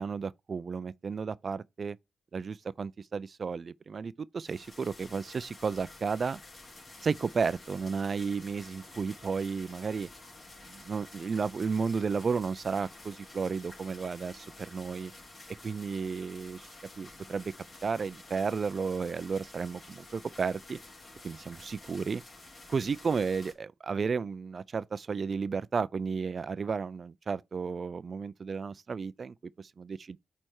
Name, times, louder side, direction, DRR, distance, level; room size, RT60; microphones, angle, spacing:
voice 1, 0.0-2.0 2.3-6.4 7.0-10.1 10.7-15.1 15.6-16.7 17.0-17.5 17.8-20.8 21.2-22.2 22.7-30.2, right 5 dB, 45° right, 0.3 m, -33 dB
sound 1, 4.5-23.5, left 2 dB, 45° left, 3.1 m, -51 dB
8.6 x 3.3 x 4.6 m
cardioid pair, 75°, 0 cm